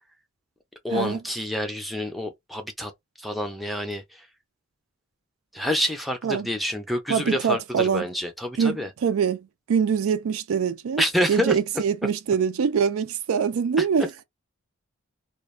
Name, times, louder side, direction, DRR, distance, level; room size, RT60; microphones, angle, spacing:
voice 1, 0.8-2.9 3.2-4.3 5.5-8.9 11.0-11.5 13.8-13.9, left 1 dB, ahead, 0.5 m, -28 dB
voice 2, 7.1-8.1 8.6-11.0 11.3-14.1, right 6 dB, 65° right, 0.4 m, -24 dB
2.4 x 2.1 x 3.1 m
head